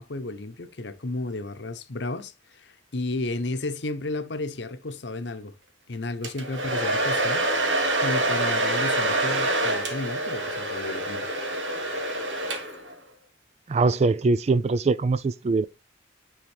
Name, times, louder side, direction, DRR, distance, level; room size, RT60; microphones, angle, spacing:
voice 1, 0.0-5.5 5.9-7.4 8.0-11.3, left 2 dB, 65° left, 0.8 m, -33 dB
Domestic sounds home sounds, 6.2-12.9, right 1 dB, 85° right, 1.5 m, -26 dB
voice 2, 13.7-15.7, right 3 dB, 35° right, 0.3 m, -22 dB
9.7 x 3.8 x 3.4 m
head